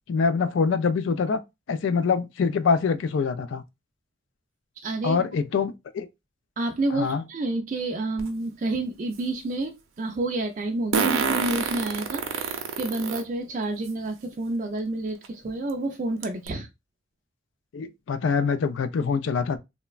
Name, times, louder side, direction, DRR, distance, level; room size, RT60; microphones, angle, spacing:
voice 1, 0.1-1.4 1.7-3.6 5.0-6.1 6.9-7.2 17.7-19.6, left 5 dB, 65° left, 0.3 m, -24 dB
voice 2, 4.8-5.2 6.6-16.7, right 2 dB, 35° right, 0.3 m, -29 dB
Fart, 8.2-8.3 10.9-13.2 13.9-14.0 15.2-15.3 15.7-15.8 16.2-16.5, right 5 dB, 85° right, 0.5 m, -26 dB
3.1 x 2.1 x 2.3 m
head